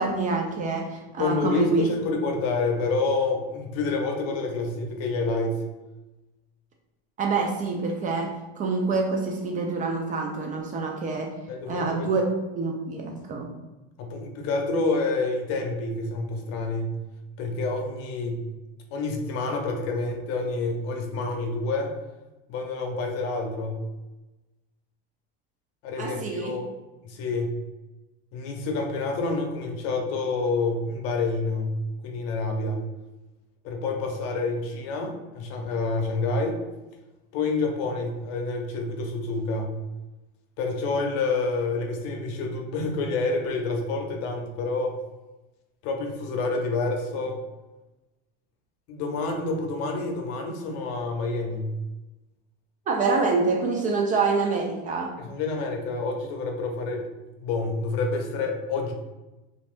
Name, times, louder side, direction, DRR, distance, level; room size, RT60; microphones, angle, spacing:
voice 1, 0.0-1.9 7.2-11.3 11.7-12.3 12.6-13.5 26.0-26.6 52.9-55.2, right 4 dB, 25° right, 1 dB, 0.4 m, -26 dB
voice 2, 1.2-5.6 11.5-12.1 14.0-17.0 17.4-18.4 18.9-21.9 22.5-23.8 25.8-26.7 27.0-27.6 28.3-31.7 32.0-32.8 33.6-36.6 37.3-39.7 40.6-45.0 45.8-47.4 48.9-51.7 55.2-57.1 57.4-58.9, left 3 dB, 50° left, 2 dB, 0.8 m, -28 dB
3.3 x 2.5 x 2.5 m, 1.1 s
supercardioid pair, 110°, 31 cm